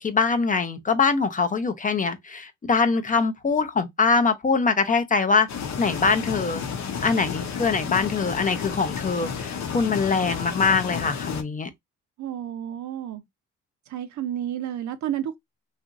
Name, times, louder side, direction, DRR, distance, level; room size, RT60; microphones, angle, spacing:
voice 1, 0.0-5.5 5.8-6.6 7.0-11.7, left 4 dB, 25° left, 0.5 m, -23 dB
sound 1, 5.5-11.4, left 6 dB, 65° left, 0.7 m, -32 dB
voice 2, 12.2-13.2 13.9-15.4, right 10 dB, 70° right, 0.7 m, -31 dB
2.9 x 2.4 x 2.4 m
cardioid pair, 90°, 30 cm